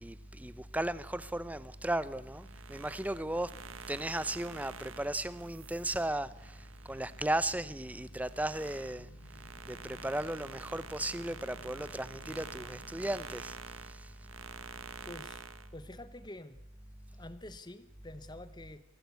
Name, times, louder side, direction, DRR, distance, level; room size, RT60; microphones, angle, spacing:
voice 1, 0.0-3.5 3.9-6.3 6.9-9.1 9.7-13.6, right 1 dB, 5° right, 0.7 m, -35 dB
sound 1, 2.0-15.1 15.4-15.5, left 1 dB, 90° left, 4.5 m, -60 dB
sound 2, 2.3-7.4 7.8-15.7, right 6 dB, 75° right, 1.2 m, -48 dB
voice 2, 15.0-15.4 15.7-16.6 17.1-18.8, left 1 dB, 20° left, 0.9 m, -47 dB
23.5 x 16.5 x 8.3 m
head